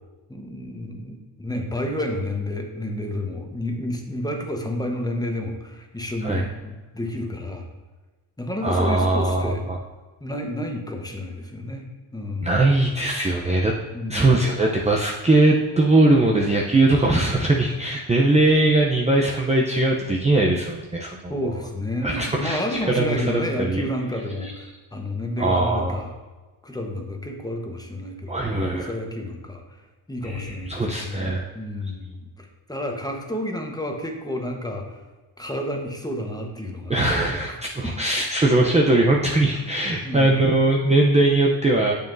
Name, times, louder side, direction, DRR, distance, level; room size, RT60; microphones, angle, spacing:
voice 1, 0.3-7.7 8.4-9.6 10.2-11.9 12.1-12.6 13.9-14.4 21.3-26.1 26.6-28.5 28.8-29.8 30.1-35.0 35.4-37.0 37.5-37.6 37.8-37.9 38.6-38.7 40.0-40.6, left 1 dB, 10° left, 2 dB, 1.1 m, -30 dB
voice 2, 8.6-9.8 12.4-13.7 14.1-21.5 22.0-23.8 24.4-24.5 25.4-26.0 28.3-28.9 30.2-31.5 36.9-41.9, right 2 dB, 15° right, -1 dB, 0.7 m, -20 dB
9.2 x 6.9 x 2.7 m, 1.3 s
cardioid pair, 90°, 47 cm